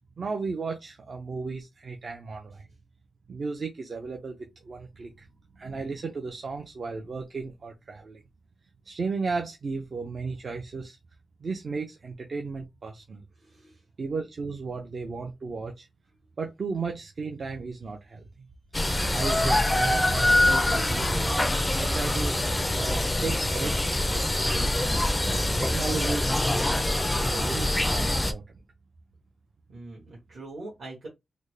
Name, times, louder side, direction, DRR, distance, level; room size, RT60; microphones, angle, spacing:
voice 1, 0.2-2.7 3.3-5.3 5.5-8.2 8.8-11.0 11.4-13.2 14.0-15.9 16.4-18.5 19.1-21.4 21.7-22.4 22.7-24.9 25.4-28.4, right 4 dB, 40° right, 0.5 m, -35 dB
voice 2, 13.4-13.8 29.7-31.1, right 2 dB, 60° right, 1.5 m, -42 dB
sound 1, 18.7-28.3, left 1 dB, 10° left, 0.4 m, -24 dB
4.0 x 2.1 x 3.2 m
wide cardioid pair, 175°, 0 cm